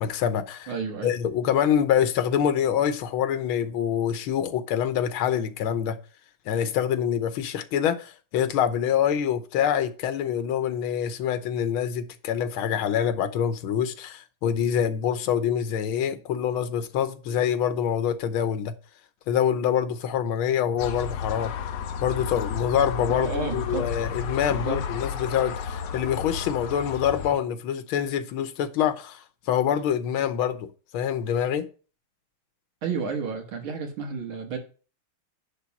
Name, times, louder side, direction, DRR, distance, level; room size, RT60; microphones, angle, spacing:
voice 1, 0.0-0.7 1.0-6.0 6.5-18.7 19.3-21.5 22.0-30.7 30.9-31.7, left 9 dB, 90° left, 1.7 m, -25 dB
voice 2, 0.7-1.1 23.1-23.9 24.5-24.8 32.8-34.6, right 5 dB, 85° right, 2.3 m, -31 dB
sound 1, 20.8-27.3, left 7 dB, 65° left, 1.4 m, -32 dB
10.0 x 3.5 x 7.1 m
omnidirectional pair, 2.2 m